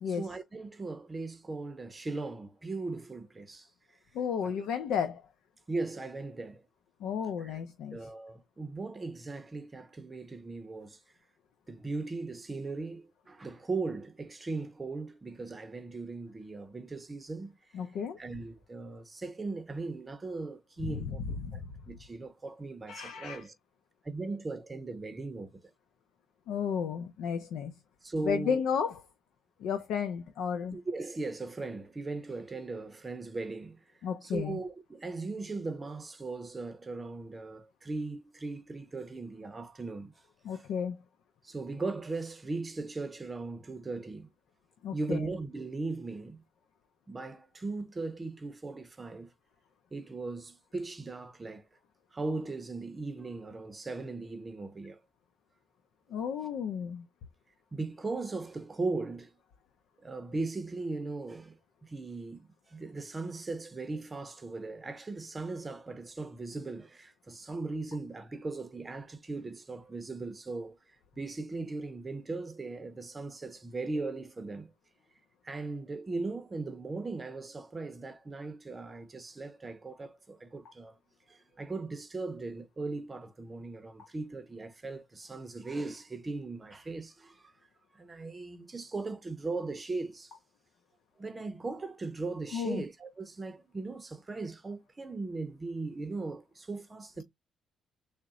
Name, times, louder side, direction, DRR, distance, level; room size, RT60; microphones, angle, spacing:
voice 1, 0.1-3.7 4.4-4.6 5.7-6.6 7.4-7.6 7.9-11.0 11.7-17.6 18.2-21.2 21.5-21.6 21.9-23.5 24.0-25.7 28.0-28.6 30.7-33.8 34.2-40.3 40.5-40.7 41.4-44.3 44.9-46.4 47.1-49.3 49.9-51.7 52.1-55.0 57.7-59.3 60.0-74.7 75.4-81.0 81.3-87.5 87.9-90.3 91.2-97.2, right 3 dB, 25° right, 0.6 m, -38 dB
voice 2, 4.1-5.2 7.0-8.0 17.7-18.2 20.9-21.6 22.9-23.4 26.5-27.7 28.2-29.0 29.6-30.8 34.0-34.6 40.4-41.0 44.8-45.2 56.1-57.1 92.5-92.8, left 7 dB, 80° left, 0.5 m, -33 dB
3.9 x 2.1 x 3.6 m
cardioid pair, 90°, 0 cm